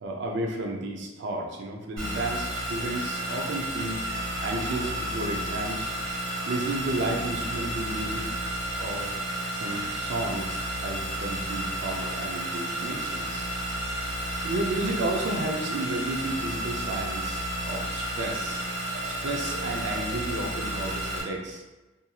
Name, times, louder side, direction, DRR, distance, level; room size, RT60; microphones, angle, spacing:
voice 1, 0.0-8.3 8.7-13.5 14.4-21.6, right 2 dB, 65° right, 1 dB, 0.4 m, -33 dB
sound 1, 2.0-21.2, right 1 dB, 80° right, 1.3 m, -32 dB
2.8 x 2.6 x 2.3 m, 1.1 s
head